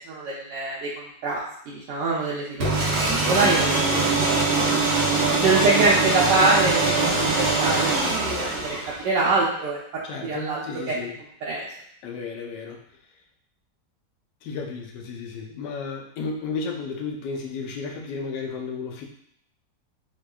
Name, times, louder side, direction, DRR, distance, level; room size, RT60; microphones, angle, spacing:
voice 1, 0.1-2.9 3.3-3.8 5.4-8.8 9.0-9.8 10.2-10.6 11.5-11.6, right 3 dB, 80° right, -6 dB, 1.2 m, -24 dB
sound 1, 2.6-9.1, right 3 dB, 60° right, 0.6 m, -22 dB
voice 2, 10.0-11.2 12.0-12.8 14.4-19.1, left 4 dB, 80° left, 2 dB, 1.2 m, -33 dB
4.4 x 2.2 x 2.3 m, 0.71 s
omnidirectional pair, 1.9 m